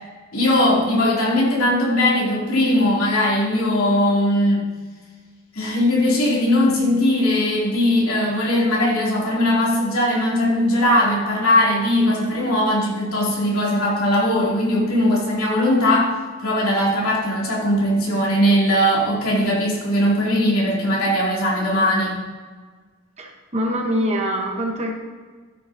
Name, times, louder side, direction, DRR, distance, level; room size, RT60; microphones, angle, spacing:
voice 1, 0.3-4.7 5.5-16.1 16.4-22.2, left 1 dB, 90° left, -4 dB, 2.9 m, -19 dB
voice 2, 23.2-24.9, equal, 30° right, 1 dB, 1.0 m, -24 dB
13.5 x 6.7 x 2.7 m, 1.4 s
head